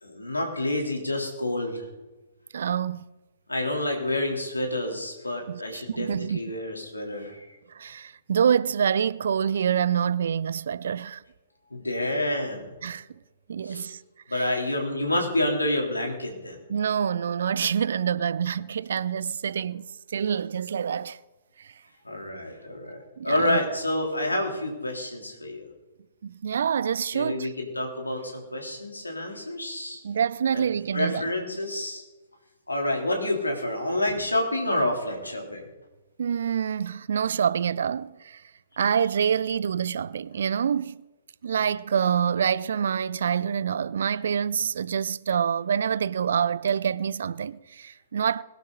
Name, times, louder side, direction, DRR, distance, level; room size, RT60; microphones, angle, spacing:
voice 1, 0.0-1.9 3.5-7.4 11.7-12.7 13.6-13.9 14.3-16.6 22.1-23.0 23.2-25.7 27.1-30.0 30.5-30.6 30.9-32.0 32.7-35.7, left 1 dB, 80° left, 3.5 m, -28 dB
voice 2, 2.5-3.0 5.5-6.4 7.7-11.2 12.8-13.1 13.5-14.0 14.3-14.5 16.7-21.2 21.6-21.7 23.2-23.6 26.2-27.5 30.0-31.2 36.2-38.4 38.8-41.0 41.4-48.4, right 8 dB, 60° right, 0.5 m, -26 dB
21.0 x 12.0 x 4.0 m
figure-of-eight pair, 115°, 0 cm